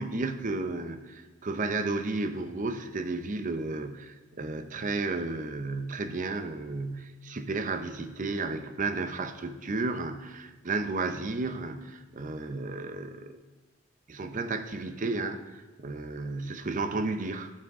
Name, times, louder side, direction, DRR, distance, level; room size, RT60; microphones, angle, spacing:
voice 1, 0.0-13.4 14.1-17.5, right 3 dB, 40° right, 8 dB, 0.6 m, -33 dB
15.0 x 6.0 x 3.6 m, 1.2 s
head